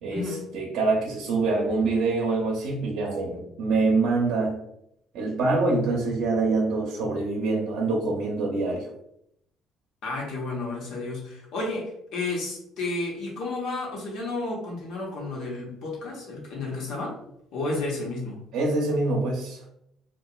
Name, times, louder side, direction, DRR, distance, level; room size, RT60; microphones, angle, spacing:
voice 1, 0.0-4.6 5.1-8.9 18.5-19.6, right 3 dB, 70° right, -2 dB, 0.6 m, -25 dB
voice 2, 10.0-17.1 17.5-18.4, left 2 dB, 70° left, -2 dB, 0.9 m, -32 dB
2.8 x 2.3 x 2.3 m, 0.76 s
cardioid pair, 130°, 0 cm